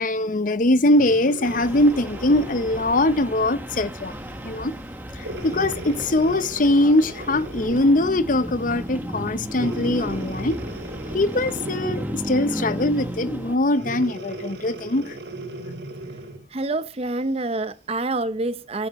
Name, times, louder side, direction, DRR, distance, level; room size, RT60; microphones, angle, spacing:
voice 1, 0.0-4.1 4.4-4.7 5.1-10.6 11.1-15.2, left 1 dB, 45° left, 0.8 m, -22 dB
Breathing, 0.9-3.5 4.1-4.3 5.2-8.1 9.5-12.3 13.7-16.5 17.1-17.2, right 1 dB, 85° right, 4.0 m, -37 dB
sound 1, 1.4-13.6, equal, 10° right, 1.5 m, -34 dB
voice 2, 16.5-18.9, right 2 dB, 35° right, 0.8 m, -27 dB
16.0 x 9.1 x 3.1 m
head